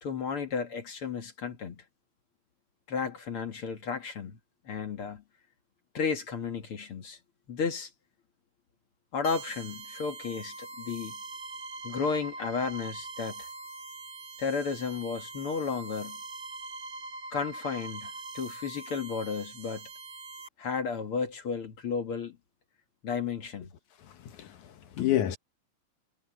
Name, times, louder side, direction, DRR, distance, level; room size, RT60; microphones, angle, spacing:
voice 1, 0.0-1.8 2.9-4.4 4.7-5.2 5.9-7.2 7.5-7.9 9.1-11.2 11.8-13.5 14.4-16.2 17.3-19.9 20.6-22.4 23.0-23.7 25.0-25.1, left 5 dB, 45° left, 2.1 m, -33 dB
sound 1, 9.2-20.5, right 3 dB, 40° right, 2.1 m, -43 dB
voice 2, 24.2-25.4, left 13 dB, 65° left, 2.3 m, -29 dB
omnidirectional pair, 4.2 m